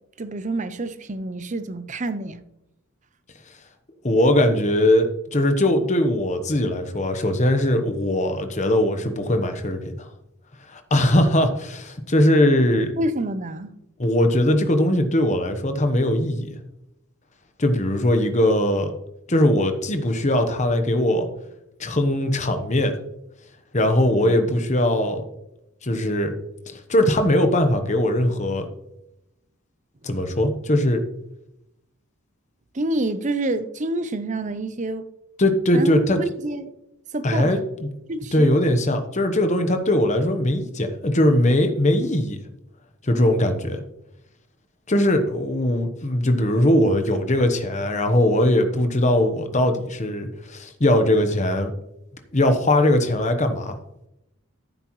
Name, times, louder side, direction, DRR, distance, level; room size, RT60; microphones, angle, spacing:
voice 1, 0.2-2.4 13.0-13.7 24.2-24.3 32.7-35.1 35.7-36.6 37.1-37.5 38.1-38.5, right 2 dB, 35° right, 0.6 m, -27 dB
voice 2, 4.0-10.1 10.7-13.0 14.0-16.6 17.6-18.9 19.3-21.3 21.8-23.0 23.7-25.2 25.8-26.3 26.7-28.7 30.0-31.0 35.4-36.2 37.2-37.9 38.3-42.4 43.0-43.8 44.9-51.7 52.3-53.8, left 1 dB, 30° left, 1.0 m, -20 dB
14.0 x 7.7 x 3.1 m
head